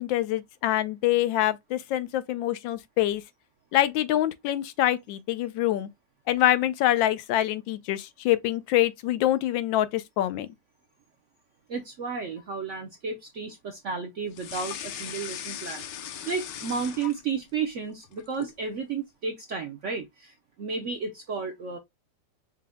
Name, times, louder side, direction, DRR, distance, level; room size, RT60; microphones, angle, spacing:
voice 1, 0.0-3.2 3.7-5.9 6.3-10.5, left 13 dB, 90° left, 1.3 m, -25 dB
voice 2, 11.7-21.8, right 5 dB, 70° right, 0.7 m, -33 dB
sound 1, 14.3-17.5 17.9-18.6, left 9 dB, 75° left, 1.3 m, -38 dB
5.0 x 2.2 x 3.5 m
omnidirectional pair, 2.0 m